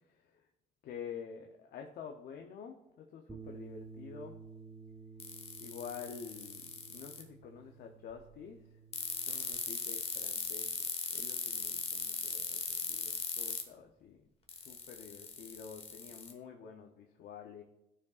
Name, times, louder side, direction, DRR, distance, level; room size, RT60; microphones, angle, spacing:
voice 1, 0.1-0.4 0.8-4.4 5.6-8.7 9.3-14.2 14.7-17.6, left 7 dB, 65° left, 3 dB, 0.7 m, -48 dB
Bass guitar, 3.3-9.5, right 5 dB, 15° right, 0.8 m, -52 dB
sound 1, 5.2-7.2 8.9-13.6 14.5-16.3, left 5 dB, 35° left, 1.1 m, -38 dB
12.5 x 4.8 x 2.4 m, 0.92 s
cardioid pair, 110°, 17 cm